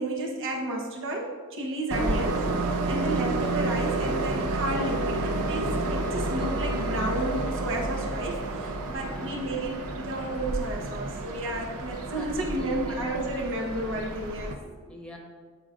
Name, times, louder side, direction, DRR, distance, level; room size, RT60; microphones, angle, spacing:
voice 1, 0.0-2.4 2.9-14.5, right 1 dB, 60° right, 0 dB, 1.1 m, -32 dB
voice 2, 1.9-2.3 2.9-3.3 9.0-9.4 12.0-13.1 14.6-15.2, equal, 5° left, -2 dB, 1.0 m, -43 dB
Train, 1.9-14.5, right 2 dB, 80° right, 0.7 m, -30 dB
12.0 x 4.9 x 2.5 m, 1.5 s
head